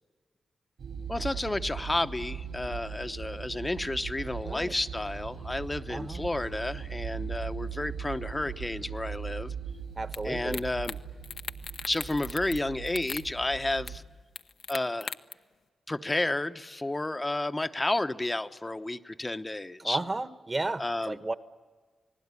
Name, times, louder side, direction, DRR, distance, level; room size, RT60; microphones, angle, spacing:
sound 1, 0.8-14.0, right 7 dB, 80° right, 6.4 m, -39 dB
voice 1, 1.1-9.5 10.2-11.0 11.8-14.0 14.7-15.1 15.9-20.0 20.8-21.2, left 2 dB, 20° left, 10 dB, 0.9 m, -31 dB
voice 2, 4.4-4.7 5.9-6.2 10.0-10.6 19.8-21.3, right 2 dB, 25° right, 13 dB, 1.2 m, -33 dB
sound 2, 10.1-10.2 10.5-11.0 11.2-12.6 12.9-13.3 13.9-14.0 14.4-15.3, left 6 dB, 70° left, 0.9 m, -38 dB
29.0 x 19.5 x 9.7 m, 1.5 s
cardioid pair, 95°, 0 cm